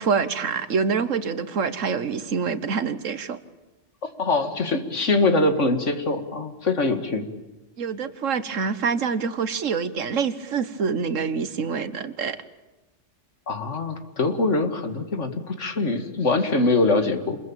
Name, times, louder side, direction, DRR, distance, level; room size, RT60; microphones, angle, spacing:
voice 1, 0.0-3.4 7.8-12.4, right 5 dB, 85° right, 12 dB, 1.6 m, -26 dB
voice 2, 4.0-7.3 13.5-17.4, left 3 dB, 75° left, 7 dB, 2.5 m, -23 dB
26.5 x 22.0 x 8.9 m, 1.0 s
omnidirectional pair, 1.3 m